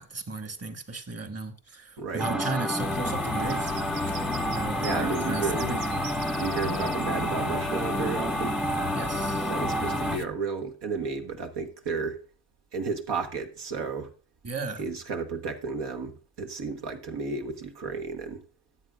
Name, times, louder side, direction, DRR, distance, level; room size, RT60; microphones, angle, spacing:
voice 1, 0.0-3.7 4.1-4.2 4.5-5.8 8.9-9.5 14.4-14.8, right 3 dB, 35° right, 1.7 m, -35 dB
voice 2, 2.0-2.5 3.4-3.5 4.8-5.7 6.4-8.6 9.5-12.2 12.7-14.1 14.8-18.4, right 4 dB, 70° right, 1.4 m, -32 dB
sound 1, 2.2-10.2, right 1 dB, ahead, 0.4 m, -29 dB
sound 2, 2.8-10.2, left 13 dB, 60° left, 0.6 m, -36 dB
sound 3, 3.4-7.1, right 7 dB, 85° right, 0.8 m, -43 dB
13.0 x 8.1 x 2.4 m
hypercardioid pair, 45°, 42 cm